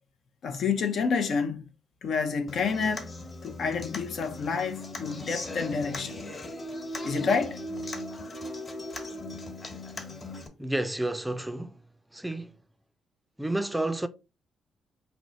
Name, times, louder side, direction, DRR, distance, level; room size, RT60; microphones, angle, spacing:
voice 1, 0.4-1.6 2.0-3.1 3.4-6.2 7.0-7.6, left 5 dB, 65° left, 0.7 m, -28 dB
Human voice / Acoustic guitar, 2.5-10.5, left 1 dB, 35° left, 1.3 m, -38 dB
voice 2, 10.6-11.8 12.1-12.6 13.4-14.1, right 1 dB, 5° right, 0.4 m, -30 dB
4.5 x 2.8 x 4.1 m
cardioid pair, 90°, 0 cm